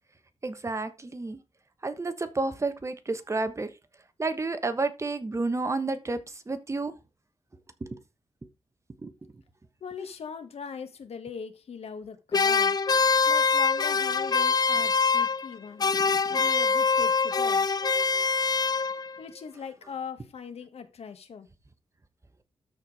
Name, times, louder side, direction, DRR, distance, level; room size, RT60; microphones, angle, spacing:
voice 1, 0.4-1.4 1.8-3.7 4.2-6.2 6.5-6.9 7.8-8.0 9.0-9.1, right 3 dB, 25° right, 1.2 m, -30 dB
voice 2, 9.8-12.8 13.3-15.9 16.3-17.7 19.2-21.5, left 6 dB, 75° left, 1.5 m, -40 dB
sound 1, 12.3-15.5 15.8-19.2, left 5 dB, 40° left, 0.6 m, -24 dB
13.0 x 4.6 x 4.8 m
wide cardioid pair, 120°, 11 cm